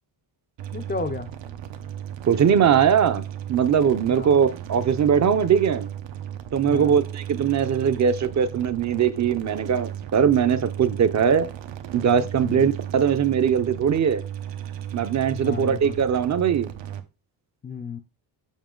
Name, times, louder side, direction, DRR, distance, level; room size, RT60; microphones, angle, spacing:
sound 1, 0.6-17.0, right 10 dB, 85° right, 1.0 m, -35 dB
voice 1, 0.7-1.3 4.1-4.4 6.6-7.0 12.4-12.7 15.3-16.0 17.6-18.0, left 5 dB, 25° left, 0.4 m, -32 dB
voice 2, 2.3-3.2 3.5-5.9 6.5-11.5 11.9-14.2 14.9-16.7, right 7 dB, 40° right, 0.6 m, -21 dB
7.3 x 5.5 x 3.7 m
cardioid pair, 155°, 43 cm